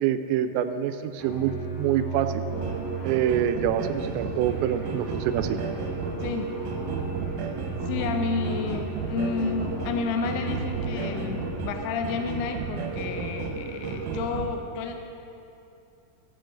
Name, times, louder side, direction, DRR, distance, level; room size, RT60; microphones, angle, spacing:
voice 1, 0.0-2.5 3.0-5.6, right 10 dB, 90° right, 9 dB, 2.9 m, -26 dB
sound 1, 1.2-11.7, right 4 dB, 55° left, 3.0 m, -35 dB
sound 2, 2.5-14.5, right 4 dB, 70° right, 2.0 m, -33 dB
voice 2, 6.2-6.5 7.7-15.0, left 5 dB, 85° left, 5 dB, 2.3 m, -31 dB
16.5 x 7.8 x 3.9 m, 2.6 s
omnidirectional pair, 5.2 m